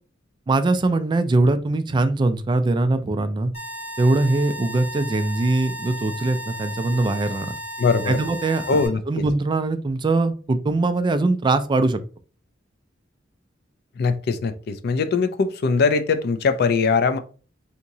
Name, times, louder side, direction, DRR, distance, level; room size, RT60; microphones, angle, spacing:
voice 1, 0.5-3.5 4.0-7.6 8.1-8.8 9.1-12.0, right 2 dB, 25° right, 0.3 m, -21 dB
sound 1, 3.5-8.9, equal, 35° left, 1.7 m, -35 dB
voice 2, 7.8-8.2 8.7-9.2 14.0-17.2, left 4 dB, 55° left, 0.4 m, -21 dB
3.5 x 2.9 x 2.7 m
head